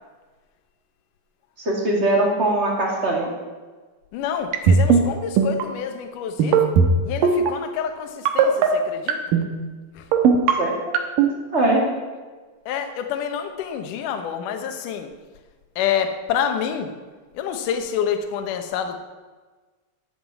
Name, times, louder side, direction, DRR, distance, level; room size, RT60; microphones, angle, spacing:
voice 1, 1.6-3.3 10.6-10.9 11.5-11.9, right 1 dB, 20° right, -1 dB, 1.9 m, -21 dB
voice 2, 4.1-6.7 7.0-9.4 9.9-10.1 12.7-15.1 15.8-16.9 17.3-19.0, left 8 dB, 65° left, 6 dB, 2.3 m, -27 dB
sound 1, 4.5-5.0 5.4-5.6 6.4-6.9 7.2-7.5 8.3-8.7 9.1-9.5 10.1-10.5 10.9-11.3, right 7 dB, 70° right, 2.5 m, -16 dB
12.0 x 7.4 x 8.3 m, 1.3 s
omnidirectional pair, 4.6 m